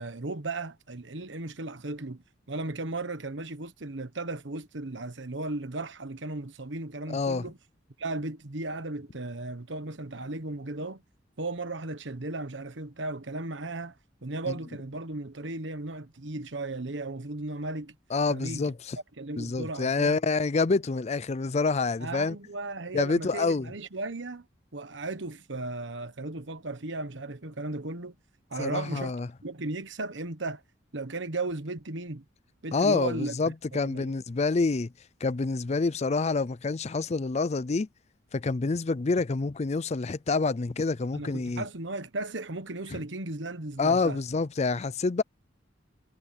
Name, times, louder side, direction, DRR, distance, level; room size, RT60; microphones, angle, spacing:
voice 1, 0.0-7.6 8.0-11.0 11.4-13.9 14.2-17.9 18.3-18.7 19.2-20.2 22.0-24.5 24.7-28.1 28.5-29.1 29.4-30.6 30.9-32.2 32.6-34.1 41.1-44.2, right 2 dB, 70° right, 1.3 m, -36 dB
voice 2, 7.1-7.4 14.5-14.6 18.1-19.0 19.4-22.4 22.9-23.7 28.6-29.3 32.7-34.9 35.2-37.9 38.3-41.6 42.9-43.0 43.8-45.2, left 3 dB, 35° left, 0.5 m, -27 dB
head